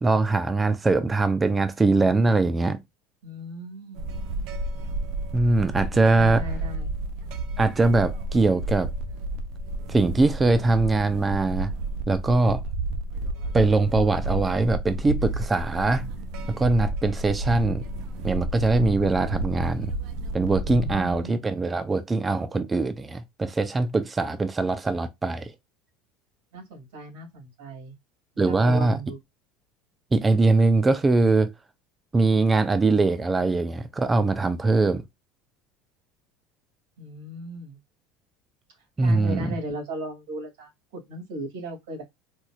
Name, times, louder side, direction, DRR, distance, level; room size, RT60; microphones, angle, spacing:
voice 1, 0.0-2.8 5.3-6.4 7.6-8.9 9.9-11.7 12.1-12.6 13.5-16.1 16.5-17.8 18.2-19.9 20.3-25.5 28.4-29.0 30.1-31.5 32.1-35.0 39.0-39.5, right 3 dB, 15° right, 0.3 m, -22 dB
voice 2, 3.2-4.1 6.2-6.9 20.6-21.3 26.5-27.9 28.3-29.2 37.0-37.8 39.0-42.0, equal, 90° right, 2.3 m, -37 dB
sound 1, 3.9-21.3, right 2 dB, 60° right, 0.6 m, -31 dB
4.3 x 2.4 x 2.3 m
cardioid pair, 150°, 0 cm